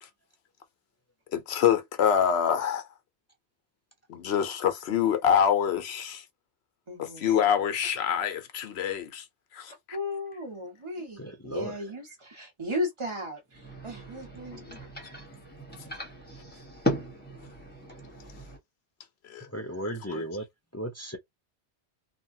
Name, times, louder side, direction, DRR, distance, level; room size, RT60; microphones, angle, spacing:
voice 1, 1.3-2.8 4.1-6.2 7.0-9.2 9.5-10.0 11.5-11.6 14.5-14.8 19.3-19.5 19.8-20.3, left 8 dB, 70° left, 1.0 m, -26 dB
voice 2, 6.9-7.2 9.7-14.9, left 1 dB, 25° right, 1.3 m, -36 dB
voice 3, 11.2-11.8 19.5-20.5 20.7-21.2, right 1 dB, 25° left, 0.3 m, -35 dB
sound 1, 13.5-18.6, equal, 10° left, 1.1 m, -36 dB
2.8 x 2.4 x 2.6 m
omnidirectional pair, 1.2 m